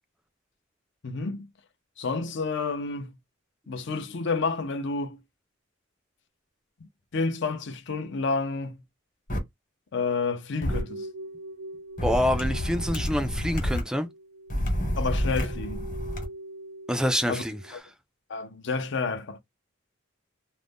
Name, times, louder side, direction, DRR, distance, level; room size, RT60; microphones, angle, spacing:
voice 1, 1.0-1.5 2.0-3.1 3.7-5.2 7.1-8.8 9.9-11.1 15.0-15.9 17.3-17.4 18.3-19.4, left 4 dB, 60° left, 0.5 m, -29 dB
sound 1, 9.3-9.4 10.6-10.8 12.0-13.8 14.5-16.2, equal, 40° left, 1.1 m, -29 dB
sound 2, 10.7-17.8, right 1 dB, 75° right, 0.6 m, -43 dB
voice 2, 12.0-14.1 16.9-17.6, equal, 5° right, 0.3 m, -26 dB
2.5 x 2.1 x 3.4 m
head